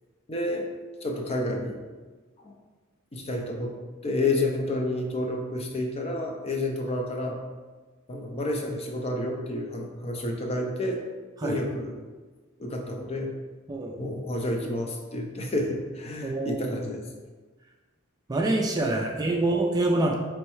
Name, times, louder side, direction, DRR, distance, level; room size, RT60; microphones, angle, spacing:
voice 1, 0.3-0.7 1.0-1.8 2.4-2.5 3.1-3.7 4.0-7.4 8.1-11.0 11.4-12.0 12.6-13.3 14.0-17.1 18.8-19.1, left 1 dB, 30° left, 1 dB, 0.5 m, -30 dB
voice 2, 16.2-16.7 18.3-20.2, right 2 dB, 20° right, 0 dB, 0.4 m, -25 dB
4.5 x 3.1 x 3.1 m, 1.3 s
head